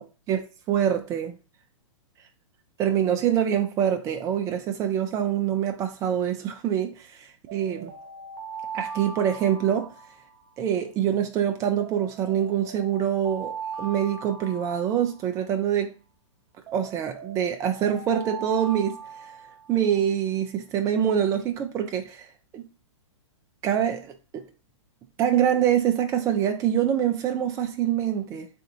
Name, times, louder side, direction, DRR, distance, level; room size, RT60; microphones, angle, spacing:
voice 1, 0.0-1.4 2.8-7.9 8.7-9.9 10.6-15.9 16.7-19.0 19.7-22.3 22.5-22.7 23.6-24.5 25.2-28.5, right 9 dB, 20° right, 0.4 m, -25 dB
sound 1, 7.5-10.7 11.8-15.5 16.7-19.9, right 5 dB, 40° right, 1.0 m, -39 dB
3.6 x 3.3 x 2.8 m
hypercardioid pair, 115°, 16 cm